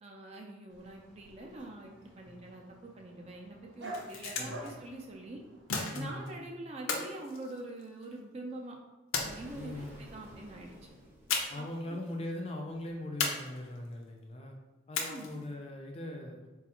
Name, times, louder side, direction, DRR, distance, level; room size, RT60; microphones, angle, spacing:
voice 1, 0.0-5.4 5.9-8.8 9.2-10.7 11.5-11.7 15.0-15.4, right 2 dB, 30° right, 1 dB, 0.4 m, -45 dB
Dog, 0.7-6.0, right 1 dB, 70° right, 0.7 m, -49 dB
sound 1, 3.7-4.7 5.7-6.3 6.9-8.1 9.1-9.9 11.3-11.8 12.0-12.1 13.2-13.9 14.9-15.5, left 4 dB, 90° left, 0.6 m, -35 dB
voice 2, 4.3-4.8 5.9-6.4 9.5-10.0 11.5-14.6 14.9-16.5, left 1 dB, 30° left, 1 dB, 0.4 m, -40 dB
Explosion, 9.1-12.1, equal, 10° right, 0.8 m, -52 dB
4.0 x 2.3 x 2.9 m, 1.2 s
head